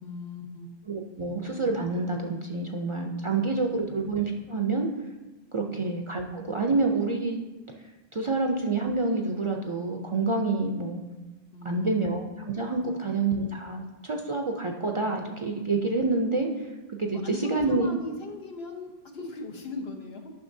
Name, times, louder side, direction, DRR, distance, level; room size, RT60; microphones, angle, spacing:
voice 1, 0.0-0.7 3.2-3.5 3.8-4.1 5.7-5.8 11.5-11.9 12.8-13.1 17.2-20.3, left 3 dB, 80° left, 2 dB, 1.2 m, -39 dB
voice 2, 0.9-4.9 5.5-7.4 8.1-11.0 11.6-16.7 17.0-17.9, right 3 dB, 45° right, 2 dB, 0.4 m, -28 dB
10.5 x 5.8 x 2.7 m, 1.1 s
omnidirectional pair, 1.0 m